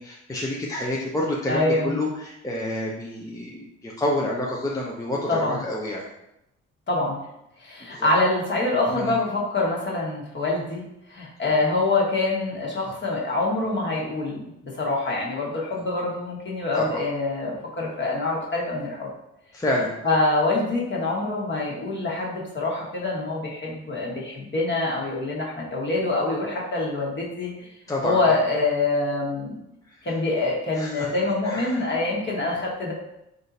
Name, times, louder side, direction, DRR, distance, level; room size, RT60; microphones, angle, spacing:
voice 1, 0.0-6.0 7.8-8.1 8.9-9.2 16.7-17.0 19.5-19.9 27.9-28.4 29.9-30.0 30.7-31.1 31.4-31.8, left 1 dB, 10° left, -3 dB, 0.6 m, -28 dB
voice 2, 1.5-2.0 5.3-5.6 6.9-7.2 7.6-10.8 11.1-19.1 20.0-27.7 28.0-29.6 30.0-32.9, left 2 dB, 40° left, -3 dB, 1.3 m, -25 dB
3.6 x 2.7 x 4.0 m, 0.85 s
cardioid pair, 90°, 30 cm